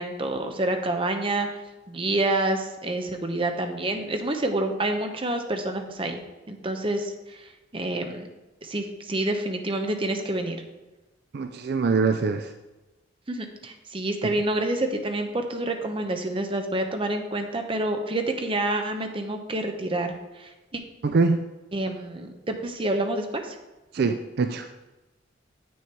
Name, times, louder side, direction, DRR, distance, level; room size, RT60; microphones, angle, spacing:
voice 1, 0.0-1.6 1.9-6.2 6.5-7.4 7.7-8.3 8.6-10.6 13.3-20.8 21.7-23.6, right 2 dB, 30° right, 5 dB, 0.8 m, -28 dB
voice 2, 11.3-12.5 21.0-21.4 23.9-24.7, right 4 dB, 55° right, 8 dB, 0.4 m, -23 dB
8.5 x 6.3 x 4.5 m, 1.1 s
head